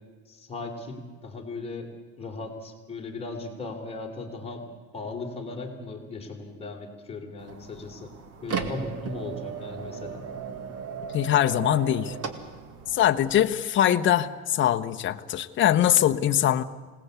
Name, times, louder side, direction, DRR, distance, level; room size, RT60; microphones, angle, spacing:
voice 1, 0.3-4.6 4.9-8.1 8.4-10.3, left 3 dB, 15° left, 1 dB, 3.4 m, -37 dB
sound 1, 7.4-13.4, right 6 dB, 45° right, 2.1 m, -36 dB
voice 2, 11.1-12.2 12.9-16.6, left 11 dB, 35° left, 7 dB, 0.9 m, -22 dB
26.5 x 18.5 x 8.2 m, 1.4 s
cardioid pair, 155°, 36 cm